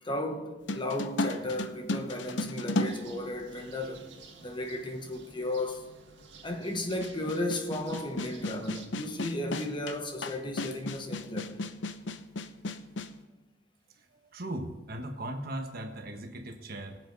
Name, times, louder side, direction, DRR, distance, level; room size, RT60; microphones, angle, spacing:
voice 1, 0.0-4.1 4.4-5.9 6.4-11.7, left 1 dB, 25° left, 1.3 m, -34 dB
sound 1, 0.7-3.9 4.8-4.9 7.0-13.2, left 2 dB, 85° left, 0.8 m, -34 dB
sound 2, 2.8-8.9, right 5 dB, 80° right, 2.0 m, -54 dB
voice 2, 14.0-17.0, right 1 dB, 55° right, 1.4 m, -38 dB
22.5 x 7.8 x 4.1 m
head